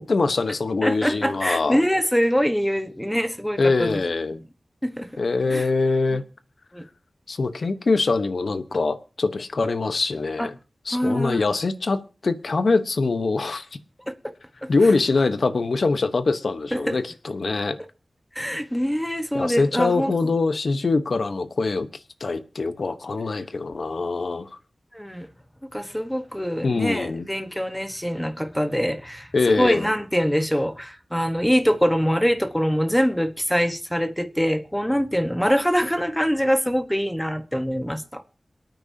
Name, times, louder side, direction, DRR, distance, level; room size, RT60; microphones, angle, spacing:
voice 1, 0.0-1.8 3.6-4.4 5.2-6.2 7.3-10.6 10.8-13.7 14.7-17.8 19.3-21.9 22.2-24.5 26.6-27.3 29.3-29.9, left 3 dB, 75° left, 1.0 m, -23 dB
voice 2, 0.8-4.0 4.8-5.1 5.5-5.7 6.7-6.8 10.4-10.5 10.9-11.4 14.8-14.9 16.7-16.8 18.3-20.1 23.4-23.5 24.9-25.3 25.7-38.4, equal, 5° left, 1.2 m, -24 dB
27.5 x 9.1 x 2.8 m
wide cardioid pair, 75°, 0 cm